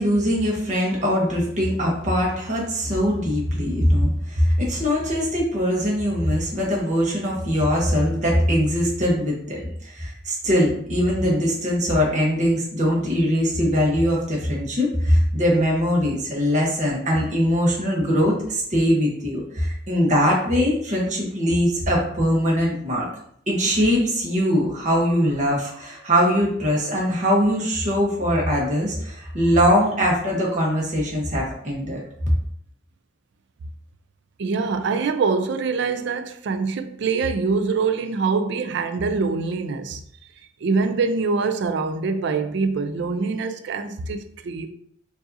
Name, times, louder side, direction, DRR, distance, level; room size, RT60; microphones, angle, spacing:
voice 1, 0.0-23.1 23.5-32.0, equal, 40° right, 1.1 m, -21 dB
voice 2, 34.4-40.0 40.6-44.7, right 4 dB, 65° right, 0.4 m, -24 dB
4.7 x 2.6 x 2.7 m
head